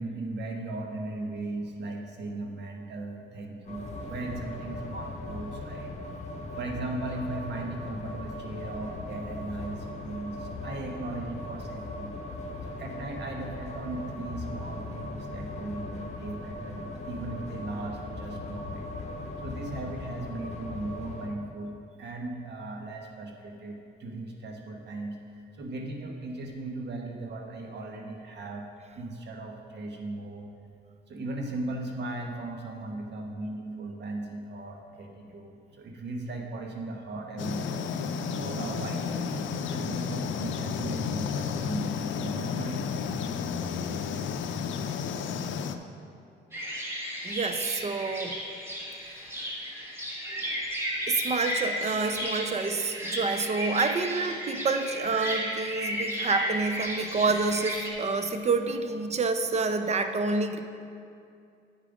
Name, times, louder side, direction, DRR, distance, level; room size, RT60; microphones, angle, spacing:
voice 1, 0.0-5.9 6.5-12.2 12.6-19.0 19.4-21.7 22.0-28.7 28.9-30.5 31.1-37.8 38.4-43.0, right 2 dB, 60° right, 2 dB, 1.2 m, -37 dB
sound 1, 3.6-21.3, left 2 dB, 35° left, 1.1 m, -39 dB
sound 2, 37.4-45.8, left 6 dB, 70° left, 0.5 m, -32 dB
sound 3, 46.5-57.9, equal, 10° right, 1.6 m, -34 dB
voice 2, 47.2-48.4 49.1-49.2 51.1-60.6, right 4 dB, 35° right, 8 dB, 0.6 m, -28 dB
8.8 x 5.0 x 5.0 m, 2.5 s
cardioid pair, 90°, 20 cm